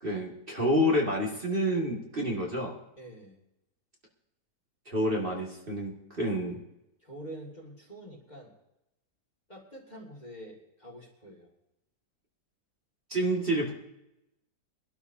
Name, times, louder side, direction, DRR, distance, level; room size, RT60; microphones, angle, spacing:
voice 1, 0.0-2.7 4.9-6.6 13.1-13.7, equal, 30° right, -2 dB, 2.1 m, -28 dB
voice 2, 3.0-3.4 7.0-8.5 9.5-11.5, right 1 dB, 25° left, 0 dB, 2.1 m, -46 dB
23.5 x 12.0 x 2.7 m, 0.88 s
omnidirectional pair, 1.8 m